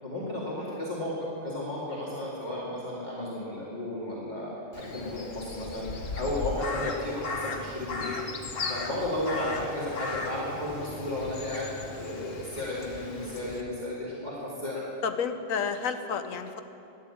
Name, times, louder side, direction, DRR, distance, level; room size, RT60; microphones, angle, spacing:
voice 1, 0.0-8.2 8.7-14.9, left 1 dB, 35° left, -7 dB, 2.6 m, -33 dB
Crow, 4.7-13.6, left 4 dB, 70° left, 1.6 m, -37 dB
voice 2, 15.0-16.6, left 6 dB, 90° left, 9 dB, 1.3 m, -31 dB
14.5 x 10.5 x 8.5 m, 2.8 s
omnidirectional pair, 1.3 m